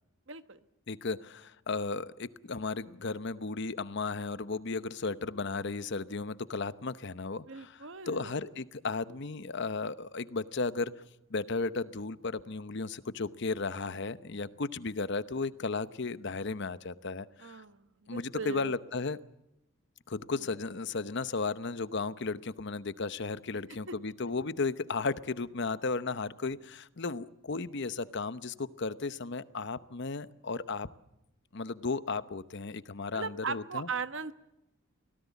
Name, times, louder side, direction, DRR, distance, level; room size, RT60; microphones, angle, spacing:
voice 1, 0.3-0.6 7.5-8.4 17.4-18.7 20.3-20.5 23.9-24.0 33.1-34.3, right 5 dB, 65° right, 12 dB, 1.2 m, -39 dB
voice 2, 0.9-10.9 11.3-17.6 18.1-19.2 20.1-30.9 31.5-33.9, left 4 dB, 60° left, 15 dB, 0.9 m, -35 dB
24.5 x 17.5 x 8.2 m, 0.87 s
head